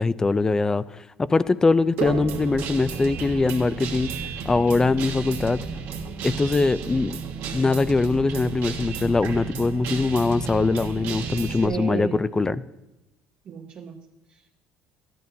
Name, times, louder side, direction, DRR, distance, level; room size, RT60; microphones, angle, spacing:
voice 1, 0.0-4.1 4.4-5.6 6.2-7.2 7.5-12.6, left 3 dB, 15° left, 0.3 m, -22 dB
Guitar, 2.0-11.7, right 6 dB, 70° right, 1.3 m, -32 dB
voice 2, 11.5-12.2 13.5-14.5, right 6 dB, 40° right, 0.8 m, -35 dB
14.0 x 11.5 x 2.7 m
cardioid pair, 125°, 4 cm